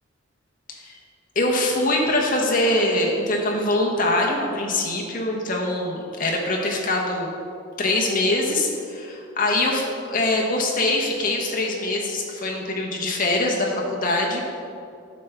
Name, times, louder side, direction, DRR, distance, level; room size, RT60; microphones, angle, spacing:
voice 1, 0.7-1.0 1.3-7.3 7.8-14.5, left 2 dB, 40° left, -1 dB, 1.0 m, -23 dB
9.1 x 5.9 x 3.4 m, 2.5 s
head